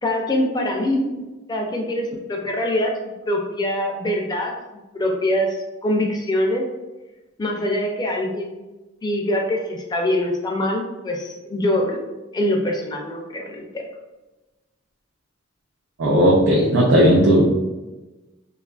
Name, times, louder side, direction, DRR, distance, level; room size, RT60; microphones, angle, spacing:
voice 1, 0.0-1.1 1.5-3.0 3.2-4.6 4.9-6.7 7.4-8.6 9.0-12.0 12.3-13.9, left 1 dB, 20° left, 1 dB, 0.4 m, -23 dB
voice 2, 16.0-17.7, equal, 70° right, -3 dB, 0.4 m, -16 dB
2.8 x 2.4 x 2.3 m, 1.1 s
head